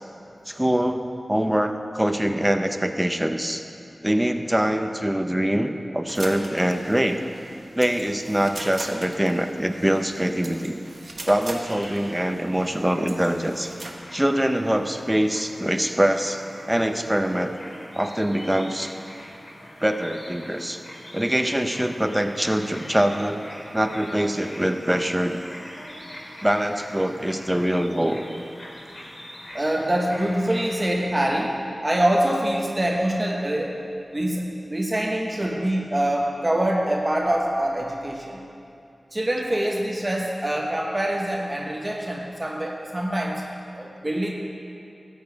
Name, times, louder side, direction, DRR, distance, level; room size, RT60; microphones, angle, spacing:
voice 1, 0.5-3.6 4.0-7.2 7.7-10.8 11.2-13.7 14.1-16.4 16.7-17.5 17.9-18.9 19.8-20.8 21.1-23.4 23.7-25.4 26.4-28.2, right 1 dB, 10° right, 7 dB, 0.8 m, -23 dB
sound 1, 6.1-13.9, right 2 dB, 55° right, 1.3 m, -40 dB
sound 2, 11.6-30.8, equal, 55° left, 2.7 m, -43 dB
voice 2, 29.5-33.7 34.1-38.4 39.1-43.5 43.7-44.3, right 1 dB, 30° right, 0 dB, 1.1 m, -25 dB
13.5 x 9.3 x 4.7 m, 2.7 s
cardioid pair, 45°, 0 cm